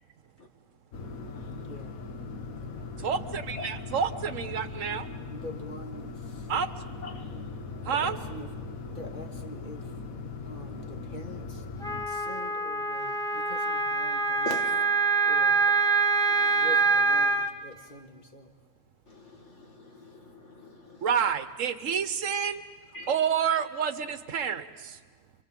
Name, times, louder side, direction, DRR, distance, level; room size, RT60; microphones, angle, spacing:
sound 1, 0.9-12.1, left 4 dB, 85° left, 1.6 m, -39 dB
voice 1, 1.6-1.9 5.3-6.1 7.8-8.5 8.9-9.9 10.5-11.5 12.1-14.6 15.3-15.7 16.6-18.5, left 1 dB, 35° left, 3 dB, 2.0 m, -44 dB
voice 2, 3.0-5.1 6.5-6.7 7.8-8.2 21.0-22.6 23.1-25.0, right 7 dB, 70° right, 12 dB, 1.3 m, -29 dB
voice 3, 7.0-7.8 14.5-14.7 19.1-19.2 19.8-21.0 22.9-23.1, left 3 dB, 55° left, 3 dB, 2.3 m, -42 dB
Wind instrument woodwind instrument, 11.8-17.5, right 4 dB, 5° left, 1.0 m, -25 dB
27.0 x 24.0 x 7.5 m, 1.4 s
omnidirectional pair, 1.4 m